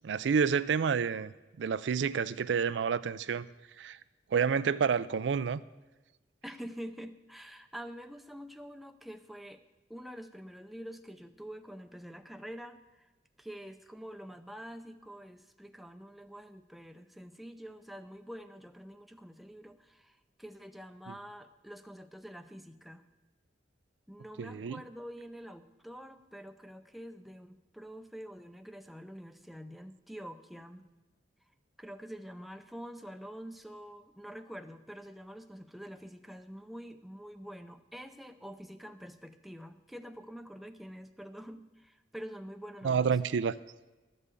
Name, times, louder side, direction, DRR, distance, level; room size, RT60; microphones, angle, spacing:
voice 1, 0.0-1.3 1.6-3.5 3.8-4.0 4.3-5.6 24.4-24.8 42.8-43.5, right 6 dB, 85° right, 0.4 m, -29 dB
voice 2, 6.4-9.6 9.9-13.1 13.4-23.0 24.1-30.8 31.8-43.2, equal, ahead, 0.5 m, -46 dB
13.0 x 5.5 x 8.2 m
head